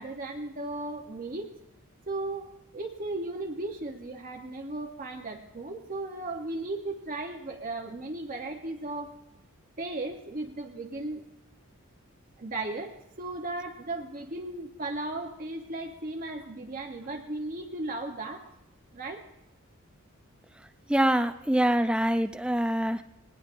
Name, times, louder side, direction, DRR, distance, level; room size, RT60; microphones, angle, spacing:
voice 1, 0.0-1.5 2.1-9.1 9.8-11.3 12.4-18.5 18.9-19.2, right 2 dB, 40° right, 2 dB, 0.9 m, -36 dB
voice 2, 20.9-23.0, right 1 dB, 5° right, 10 dB, 0.4 m, -25 dB
19.5 x 19.0 x 2.6 m, 0.87 s
head